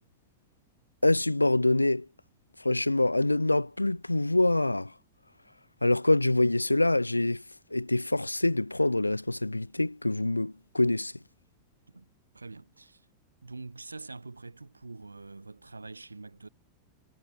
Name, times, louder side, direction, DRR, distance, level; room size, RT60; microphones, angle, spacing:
voice 1, 1.0-2.1 2.6-4.9 5.8-7.4 7.7-11.1, left 2 dB, 85° left, 1.9 m, -25 dB
voice 2, 11.9-13.1 13.4-16.5, right 3 dB, 80° right, 5.3 m, -45 dB
figure-of-eight pair, 90°, 0 cm